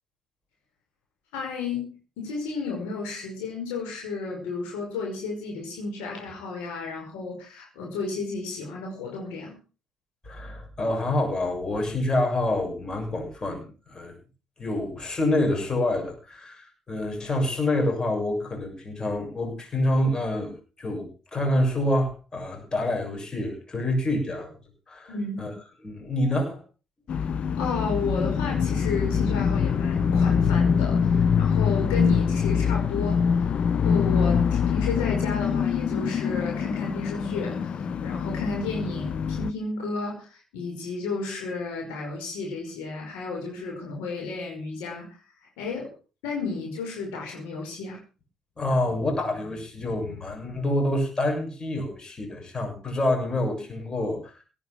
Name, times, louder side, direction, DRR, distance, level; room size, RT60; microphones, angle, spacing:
voice 1, 1.3-9.6 25.1-25.4 27.6-33.5 33.8-45.1 45.6-45.9 46.2-48.0, left 3 dB, 70° left, 0 dB, 5.4 m, -33 dB
voice 2, 10.2-14.1 14.6-24.5 24.9-25.5 25.8-26.6 48.6-54.4, left 1 dB, 30° left, 2 dB, 7.2 m, -27 dB
sound 1, 27.1-39.5, left 6 dB, 45° left, 0.9 m, -24 dB
17.5 x 9.1 x 6.1 m, 0.36 s
figure-of-eight pair, 50°, 3 cm